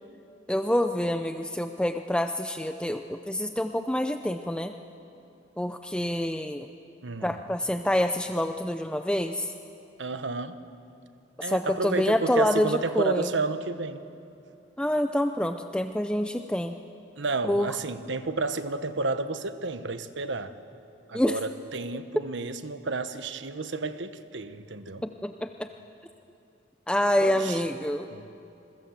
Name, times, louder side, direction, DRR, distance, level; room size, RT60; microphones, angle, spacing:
voice 1, 0.5-4.7 5.6-6.7 7.2-9.5 11.4-13.3 14.8-16.8 17.4-17.7 21.1-21.4 25.2-25.7 26.9-28.1, left 1 dB, 5° left, 7 dB, 0.5 m, -27 dB
voice 2, 7.0-7.4 10.0-10.6 11.4-14.0 17.2-20.5 21.1-25.0 27.2-27.6 28.1-28.3, right 3 dB, 80° right, 10 dB, 1.1 m, -31 dB
27.5 x 22.0 x 7.5 m, 2.7 s
head